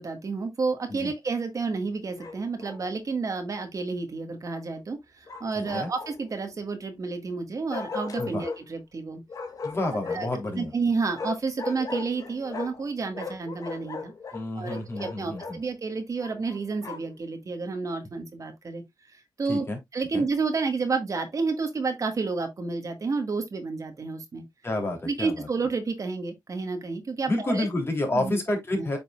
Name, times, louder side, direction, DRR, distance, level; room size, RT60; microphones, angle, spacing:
voice 1, 0.0-9.2 10.1-10.3 10.5-14.1 14.5-18.8 19.1-19.7 19.9-24.4 25.0-27.7 28.1-28.4 28.8-28.9, right 4 dB, 45° right, 1.5 m, -30 dB
Bark, 2.2-2.8 5.3-6.4 7.7-8.6 9.3-10.4 11.1-12.9 13.1-15.6 16.2-17.2, left 4 dB, 50° left, 1.7 m, -37 dB
voice 2, 5.5-5.9 8.2-8.4 9.6-10.7 14.3-15.6 19.5-19.8 20.1-20.2 24.6-25.5 27.3-29.0, left 2 dB, 30° left, 3.1 m, -29 dB
8.8 x 5.2 x 2.3 m
cardioid pair, 95°, 8 cm